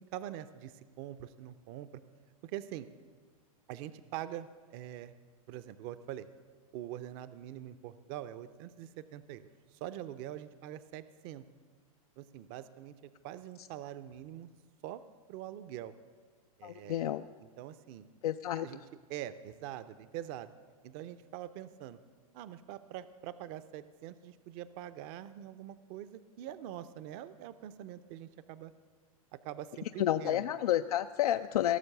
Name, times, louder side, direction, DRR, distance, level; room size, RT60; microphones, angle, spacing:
voice 1, 0.0-1.9 2.4-2.9 3.7-5.1 5.5-6.3 6.7-11.4 12.2-12.9 13.2-14.5 14.8-15.0 15.3-15.9 16.6-18.1 18.5-18.8 19.1-20.5 20.8-22.0 22.3-28.7 29.3-30.4, right 12 dB, 40° right, 14 dB, 0.5 m, -44 dB
voice 2, 16.6-17.3 18.2-18.7 30.0-31.8, left 12 dB, 85° left, 9 dB, 0.4 m, -30 dB
17.5 x 6.8 x 6.6 m, 1.5 s
hypercardioid pair, 135°, 19 cm